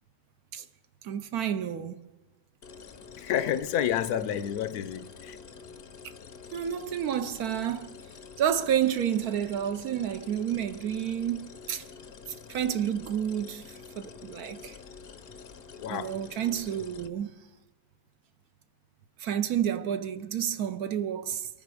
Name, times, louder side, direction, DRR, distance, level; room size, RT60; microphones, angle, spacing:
voice 1, 1.0-2.0 6.5-7.9 8.4-11.8 12.5-14.7 15.9-17.3 19.2-21.5, right 9 dB, 70° right, 1.1 m, -30 dB
sound 1, 2.6-17.1, left 5 dB, 50° left, 0.8 m, -47 dB
voice 2, 3.2-5.4 15.8-16.1, left 10 dB, 70° left, 1.1 m, -29 dB
23.5 x 9.5 x 4.8 m
omnidirectional pair, 1.8 m